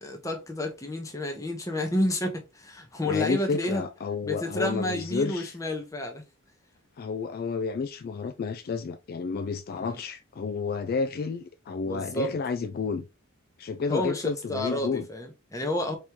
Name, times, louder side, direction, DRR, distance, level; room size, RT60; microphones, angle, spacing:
voice 1, 0.0-3.9 4.2-6.2 9.8-10.0 11.8-12.3 13.9-16.0, left 1 dB, 15° left, 0.9 m, -30 dB
voice 2, 3.0-5.6 7.0-13.1 13.6-15.1, left 4 dB, 45° left, 0.3 m, -31 dB
4.3 x 3.0 x 3.5 m
head